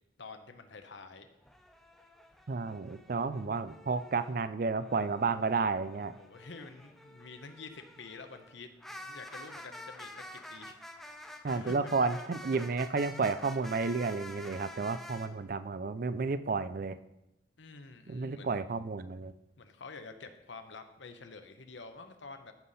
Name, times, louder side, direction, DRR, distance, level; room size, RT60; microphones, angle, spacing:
voice 1, 0.2-1.3 6.2-10.8 11.1-12.1 17.6-18.6 19.6-22.5, left 4 dB, 85° left, 7 dB, 0.9 m, -49 dB
sound 1, 1.4-4.3 4.8-15.3, equal, ahead, 0.6 m, -49 dB
voice 2, 2.5-6.2 11.4-17.0 18.1-19.3, right 4 dB, 50° right, 13 dB, 0.4 m, -32 dB
13.5 x 5.6 x 4.1 m, 0.90 s
head